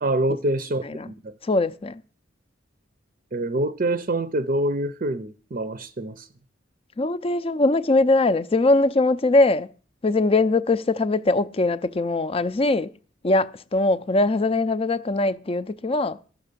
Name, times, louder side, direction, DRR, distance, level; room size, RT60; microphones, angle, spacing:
voice 1, 0.0-1.3 3.3-6.3, right 1 dB, 40° right, 0.6 m, -26 dB
voice 2, 1.4-2.0 7.0-9.7 10.0-12.9 13.2-16.2, left 2 dB, 30° left, 0.5 m, -21 dB
13.0 x 6.6 x 6.7 m
head